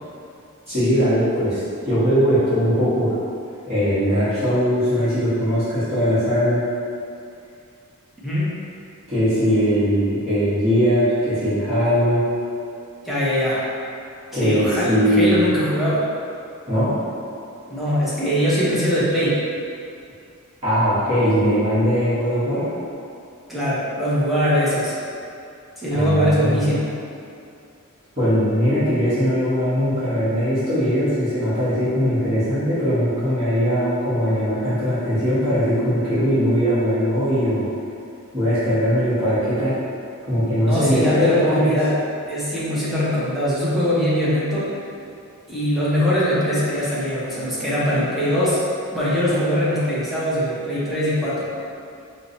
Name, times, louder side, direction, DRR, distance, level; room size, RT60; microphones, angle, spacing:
voice 1, 0.7-1.6 1.8-3.1 3.7-6.6 9.1-12.2 14.3-15.4 16.7-16.9 20.6-22.7 25.9-26.7 28.2-37.6 38.3-39.8 40.3-41.8, equal, 30° right, -16 dB, 1.1 m, -20 dB
voice 2, 13.0-13.6 14.3-16.1 17.7-19.4 23.5-25.0 25.8-26.9 40.6-42.0 42.3-44.7 45.5-48.6 48.9-51.5, equal, ahead, -10 dB, 0.8 m, -21 dB
4.4 x 2.1 x 2.6 m, 2.6 s
head